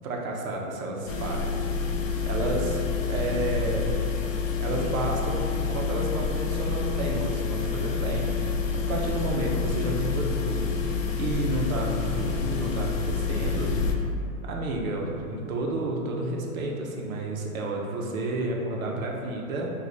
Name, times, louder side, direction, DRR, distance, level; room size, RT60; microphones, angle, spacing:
voice 1, 0.0-1.5 2.2-4.0 4.6-13.8 14.4-19.7, right 2 dB, 65° right, -1 dB, 0.7 m, -31 dB
sound 1, 1.1-13.9, left 5 dB, 60° left, 0.5 m, -28 dB
3.1 x 2.3 x 3.8 m, 2.5 s
hypercardioid pair, 170°, 45 cm